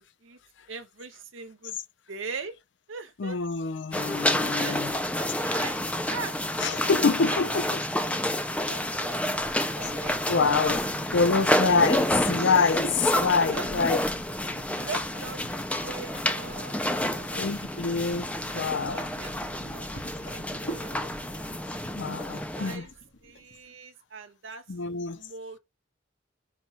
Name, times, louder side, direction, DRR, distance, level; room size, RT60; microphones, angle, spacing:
voice 1, 0.7-1.8 2.1-2.6 2.9-3.4 4.3-5.8 6.0-6.4 7.3-10.2 11.8-12.3 13.4-13.7 14.7-17.4 18.9-19.9 20.1-21.1 22.5-22.9 23.2-24.6 25.0-25.6, right 4 dB, 80° right, 0.8 m, -41 dB
voice 2, 3.2-5.0 6.6-7.7 9.8-9.9 10.3-14.0 17.3-19.1 22.0-22.9 24.7-25.2, left 4 dB, 65° left, 0.5 m, -26 dB
sound 1, 3.9-22.8, left 1 dB, 5° left, 0.3 m, -29 dB
sound 2, 8.6-23.5, equal, 80° left, 1.8 m, -44 dB
4.3 x 2.3 x 4.3 m
head